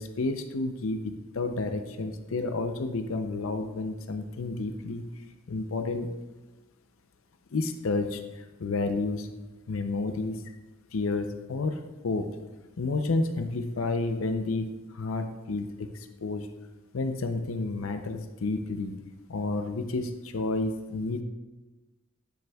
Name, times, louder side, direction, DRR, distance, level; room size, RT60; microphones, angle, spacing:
voice 1, 0.0-5.0 5.5-6.1 7.5-9.3 9.7-10.4 10.9-12.3 12.8-16.5 16.9-18.9 19.3-21.2, left 3 dB, 75° left, 7 dB, 0.6 m, -30 dB
9.5 x 7.5 x 2.3 m, 1.1 s
head